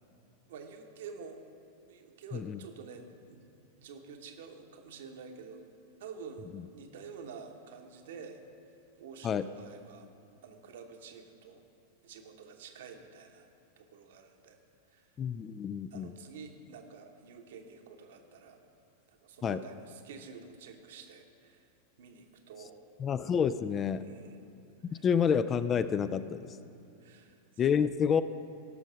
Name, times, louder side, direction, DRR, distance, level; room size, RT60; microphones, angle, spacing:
voice 1, 0.5-1.4 1.9-3.4 3.8-5.6 6.0-8.4 9.0-10.1 10.4-11.6 12.0-13.5 13.8-14.6 14.9-15.1 15.9-18.6 19.1-21.7 22.0-22.8 24.0-24.4 24.8-25.1 27.0-27.4, right 5 dB, 55° right, 4 dB, 1.1 m, -49 dB
voice 2, 15.2-16.1 19.4-19.6 23.0-24.0 25.0-26.5 27.6-28.2, left 7 dB, 25° left, 13 dB, 0.3 m, -28 dB
17.5 x 6.4 x 4.9 m, 2.7 s
figure-of-eight pair, 90°, 0 cm